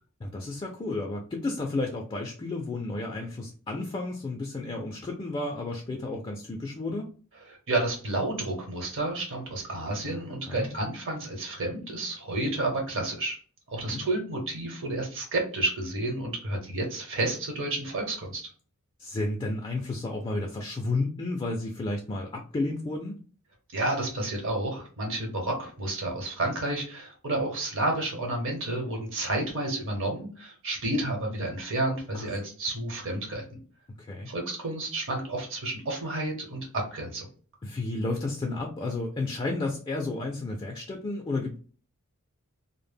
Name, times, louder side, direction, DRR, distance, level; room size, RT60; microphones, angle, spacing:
voice 1, 0.2-7.1 10.0-10.2 10.5-10.7 13.9-14.0 19.0-23.2 32.1-32.3 34.0-34.3 37.6-41.6, left 2 dB, 20° left, 0 dB, 0.3 m, -32 dB
voice 2, 7.5-13.4 13.7-18.5 23.7-33.4 34.3-37.3, right 2 dB, 65° right, 1 dB, 0.9 m, -30 dB
2.0 x 2.0 x 3.3 m, 0.40 s
head